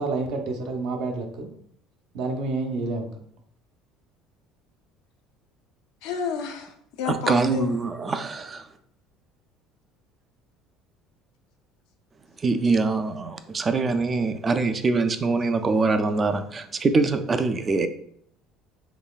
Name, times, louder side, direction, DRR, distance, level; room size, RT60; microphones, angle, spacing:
voice 1, 0.0-1.5 2.1-3.2, right 3 dB, 65° right, 0.7 m, -29 dB
voice 2, 6.0-7.7, left 6 dB, 80° left, 0.6 m, -30 dB
voice 3, 7.1-8.7 12.4-17.9, right 3 dB, 25° right, 0.3 m, -24 dB
3.9 x 3.1 x 2.4 m
cardioid pair, 115°, 0 cm